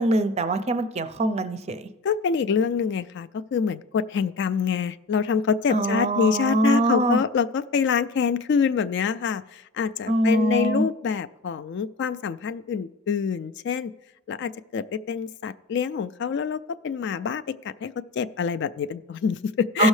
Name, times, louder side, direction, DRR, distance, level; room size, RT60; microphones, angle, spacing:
voice 1, 0.0-1.9 5.7-7.2 10.1-10.9 19.8-19.9, right 2 dB, 30° right, 10 dB, 0.5 m, -23 dB
voice 2, 2.0-13.9 14.3-19.9, left 6 dB, 55° left, 12 dB, 0.3 m, -26 dB
16.5 x 6.3 x 3.2 m, 0.98 s
head